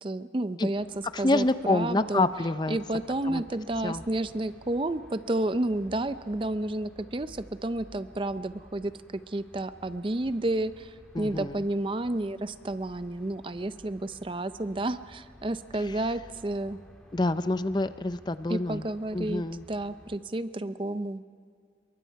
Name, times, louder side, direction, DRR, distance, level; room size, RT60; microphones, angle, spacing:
voice 1, 0.0-0.9 1.2-2.3 2.7-16.8 18.5-19.4 19.7-21.2, right 1 dB, 30° right, 12 dB, 0.5 m, -31 dB
sound 1, 0.7-20.2, equal, 5° left, 2.2 m, -54 dB
voice 2, 1.1-2.8 3.3-3.4 3.8-4.0 11.1-11.6 15.9-16.0 17.1-18.9 19.1-19.6, left 2 dB, 25° left, 12 dB, 0.5 m, -27 dB
27.5 x 23.0 x 4.7 m, 2.2 s
head